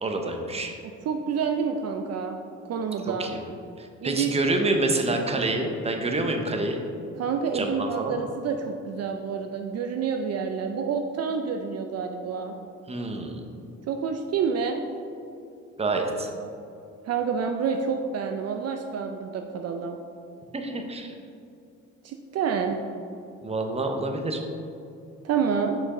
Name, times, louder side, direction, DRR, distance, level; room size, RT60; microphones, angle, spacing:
voice 1, 0.0-0.7 3.0-3.4 3.8-6.8 7.5-8.2 12.9-13.4 15.8-16.3 20.5-21.1 23.4-24.4, right 2 dB, 20° right, 3 dB, 0.8 m, -27 dB
voice 2, 1.1-2.4 2.6-3.3 4.0-4.8 7.2-12.6 13.9-14.8 17.1-20.0 22.0-22.8 25.2-25.8, right 6 dB, 55° right, 4 dB, 0.5 m, -28 dB
6.1 x 5.2 x 3.7 m, 2.6 s
cardioid pair, 90°, 30 cm